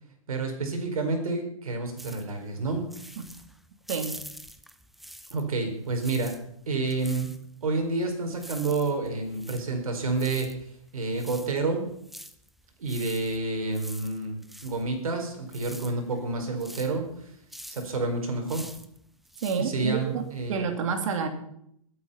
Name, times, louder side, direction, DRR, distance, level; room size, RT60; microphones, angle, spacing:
voice 1, 0.3-3.1 5.3-6.3 6.7-7.3 7.6-11.8 12.8-17.4 17.7-18.7 19.5-20.7, right 3 dB, 80° right, 5 dB, 4.8 m, -29 dB
sound 1, 2.0-5.6 5.9-20.5, equal, ahead, 0.7 m, -46 dB
voice 2, 3.9-4.2 19.4-21.3, right 6 dB, 60° right, 6 dB, 2.8 m, -29 dB
21.0 x 8.8 x 5.7 m, 0.72 s
hypercardioid pair, 135°, 18 cm